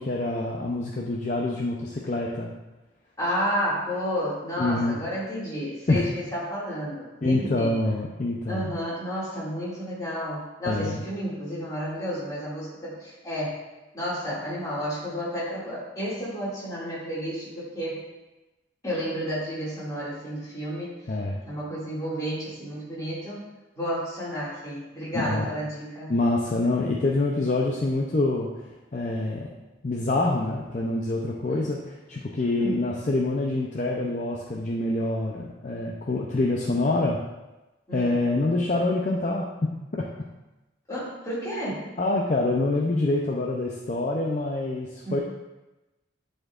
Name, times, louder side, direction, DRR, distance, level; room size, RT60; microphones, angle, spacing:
voice 1, 0.0-2.5 4.6-5.0 5.9-6.1 7.2-8.7 10.7-11.0 21.1-21.4 25.1-25.5 26.1-29.5 29.8-37.2 37.9-39.4 39.9-40.0 42.0-45.2, left 2 dB, 35° left, -2 dB, 0.5 m, -26 dB
voice 2, 3.2-7.7 8.5-13.6 13.9-18.0 18.8-21.0 21.5-23.4 23.8-26.1 31.4-31.7 32.6-32.8 37.9-38.2 40.9-41.9 45.0-45.2, equal, 15° left, -9 dB, 2.2 m, -31 dB
10.5 x 4.3 x 2.4 m, 1.1 s
head